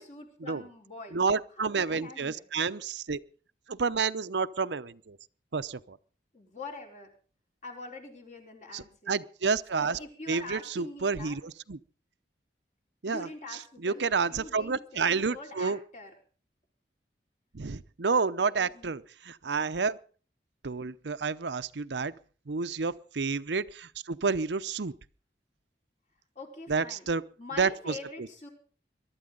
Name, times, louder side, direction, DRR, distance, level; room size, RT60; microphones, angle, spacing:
voice 1, 0.0-1.2 1.6-2.4 6.3-7.1 7.6-9.2 9.8-11.4 13.0-16.1 18.2-18.9 22.6-22.8 26.3-27.1 27.4-28.5, left 2 dB, 40° left, 4.5 m, -44 dB
voice 2, 1.1-3.2 3.7-5.2 5.5-6.0 8.7-10.0 10.3-11.8 13.0-13.3 13.8-15.8 17.5-20.0 20.6-22.1 22.5-24.9 26.7-27.2 27.6-28.0, right 5 dB, 90° right, 0.7 m, -30 dB
22.5 x 12.5 x 3.9 m
head